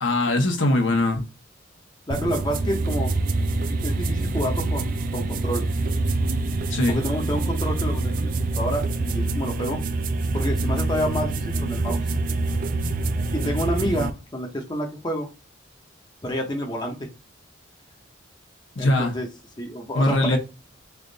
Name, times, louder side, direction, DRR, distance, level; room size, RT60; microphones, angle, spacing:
voice 1, 0.0-1.2 6.7-7.0 18.7-19.1 19.9-20.4, left 1 dB, 75° left, 1.0 m, -21 dB
voice 2, 2.1-3.1 3.8-5.7 6.9-8.3 8.6-9.8 10.3-12.0 13.3-15.3 16.2-17.1 18.8-19.3 19.6-20.4, equal, 20° left, 0.6 m, -28 dB
sound 1, 2.1-14.1, right 2 dB, 45° right, 0.4 m, -25 dB
3.4 x 2.5 x 3.8 m
head